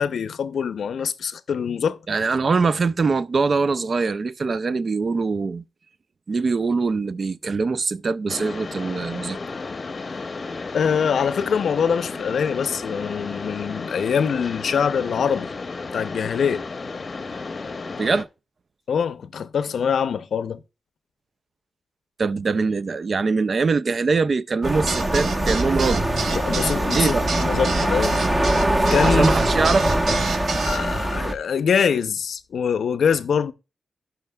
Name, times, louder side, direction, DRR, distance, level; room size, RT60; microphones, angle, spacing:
voice 1, 0.0-2.0 10.7-15.5 15.9-16.6 18.9-20.6 26.3-27.1 27.4-28.2 28.9-29.3 30.6-33.5, left 7 dB, 85° left, 0.6 m, -23 dB
voice 2, 2.1-5.6 6.3-9.4 18.0-18.3 22.2-26.1 26.9-27.3 29.0-29.9, right 4 dB, 45° right, 0.4 m, -23 dB
Mechanisms, 8.3-18.2, left 3 dB, 40° left, 0.7 m, -33 dB
sound 1, 24.6-31.3, right 1 dB, 25° right, 1.0 m, -22 dB
sound 2, 24.9-30.8, right 4 dB, 80° right, 1.2 m, -29 dB
17.0 x 5.6 x 2.2 m
wide cardioid pair, 135°, 0 cm